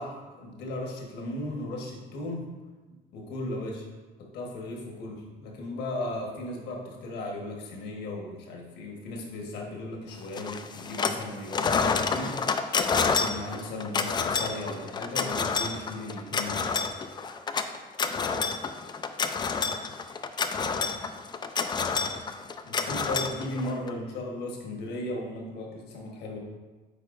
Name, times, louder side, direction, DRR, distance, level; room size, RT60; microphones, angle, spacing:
voice 1, 0.0-2.5 3.1-3.8 4.2-12.4 13.0-16.6 22.6-26.4, left 1 dB, 80° left, 0 dB, 1.3 m, -36 dB
sound 1, 10.4-11.2 11.5-23.9, left 5 dB, 25° left, 0.4 m, -29 dB
9.0 x 4.1 x 2.5 m, 1.3 s
cardioid pair, 110°, 17 cm